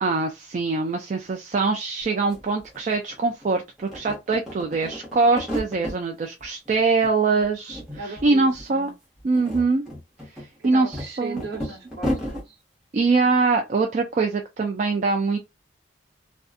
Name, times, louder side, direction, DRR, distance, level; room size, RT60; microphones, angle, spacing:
voice 1, 0.0-8.9 9.2-9.8 10.6-11.4 12.9-15.4, right 3 dB, 40° right, 0.3 m, -23 dB
sound 1, 2.0-2.1 2.3-3.4 3.8-6.0 6.4-7.1 7.4-8.3 8.5-8.7 9.2-12.4, equal, 5° right, 1.0 m, -33 dB
voice 2, 8.0-8.9 10.6-12.5, right 3 dB, 55° right, 1.0 m, -37 dB
2.6 x 2.2 x 2.4 m
head